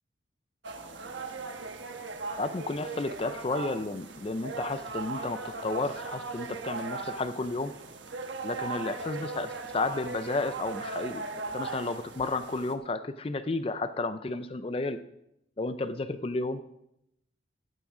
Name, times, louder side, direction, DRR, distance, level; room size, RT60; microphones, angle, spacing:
sound 1, 0.6-12.7, right 3 dB, 75° right, 1.2 m, -38 dB
voice 1, 2.4-7.7 8.4-11.3 11.5-15.0 15.6-16.6, left 3 dB, 30° left, 11 dB, 0.4 m, -32 dB
15.0 x 9.4 x 3.8 m, 0.81 s
head